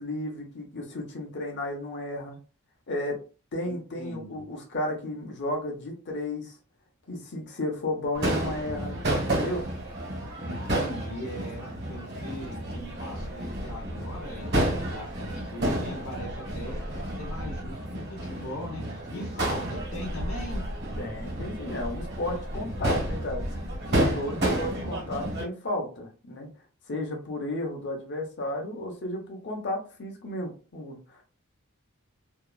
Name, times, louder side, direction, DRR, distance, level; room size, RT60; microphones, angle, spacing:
voice 1, 0.0-2.4 2.9-3.2 3.5-6.5 7.1-9.0 9.3-9.7 21.0-23.4 23.9-26.5 26.9-31.2, left 1 dB, 55° left, 1 dB, 0.8 m, -33 dB
voice 2, 3.6-4.5 10.4-20.6, left 1 dB, 85° left, -3 dB, 0.8 m, -40 dB
Crowd / Fireworks, 8.2-25.4, right 1 dB, 50° right, 1.4 m, -31 dB
2.8 x 2.3 x 2.3 m, 0.35 s
head